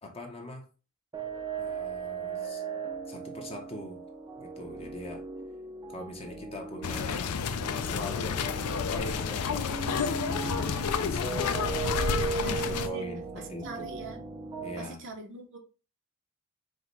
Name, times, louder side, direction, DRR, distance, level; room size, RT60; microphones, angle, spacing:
voice 1, 0.0-0.7 1.6-2.7 3.1-4.0 4.4-5.2 5.9-7.4 7.9-11.5 12.7-14.0 14.6-15.1, left 1 dB, 25° left, 1.0 m, -43 dB
sound 1, 1.1-14.8, right 5 dB, 20° right, 0.7 m, -37 dB
sound 2, 6.8-12.9, left 6 dB, 80° left, 0.5 m, -30 dB
voice 2, 12.3-13.0 13.6-14.2 14.8-15.6, right 3 dB, 60° right, 0.9 m, -42 dB
4.9 x 2.3 x 3.9 m
head